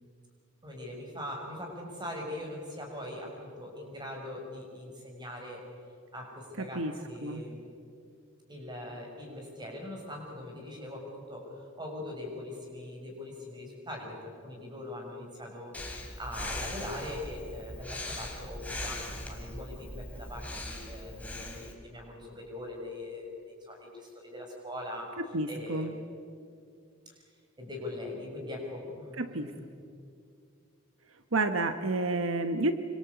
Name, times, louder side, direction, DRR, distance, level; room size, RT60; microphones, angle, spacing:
voice 1, 0.6-5.6 6.1-7.6 8.5-11.5 11.8-25.1 25.5-26.0 27.1-27.2 27.6-29.6, left 1 dB, 20° right, 1 dB, 6.4 m, -41 dB
voice 2, 6.6-6.9 7.2-7.4 25.2-25.9 29.2-29.5 31.3-32.7, right 2 dB, 75° right, 8 dB, 1.2 m, -30 dB
Breathing, 15.7-21.7, left 1 dB, 5° left, 3.0 m, -40 dB
26.0 x 25.0 x 8.3 m, 2.4 s
head